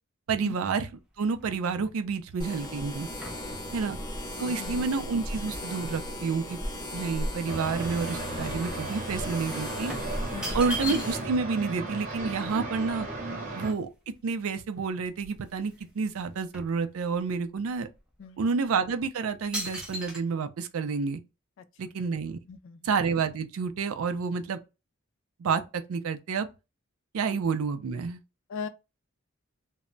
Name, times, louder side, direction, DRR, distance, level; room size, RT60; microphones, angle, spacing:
voice 1, 0.3-0.9 1.2-3.1 3.7-4.0 4.4-6.6 6.9-9.9 10.5-13.1 13.5-13.9 14.2-17.9 18.4-21.2 21.8-22.4 22.8-24.6 25.4-26.5 27.1-28.2, right 5 dB, 75° right, 0.4 m, -29 dB
sound 1, 0.9-6.1 6.5-8.7 9.0-9.2 9.9-11.5 11.8-11.9 12.1-14.2 14.8-14.9 15.1-15.9 16.2-17.4 18.0-18.1 18.7-19.0 19.5-20.2, equal, 5° right, 0.5 m, -41 dB
sound 2, 2.4-11.2, left 1 dB, 20° left, 0.8 m, -36 dB
voice 2, 3.4-3.8 4.4-4.9 10.3-10.6 13.3-13.4 18.2-18.5 21.6-21.7 22.5-22.9 28.5-28.7, left 5 dB, 60° left, 0.3 m, -40 dB
sound 3, 7.5-13.7, right 2 dB, 35° right, 0.8 m, -36 dB
2.1 x 2.0 x 3.7 m
head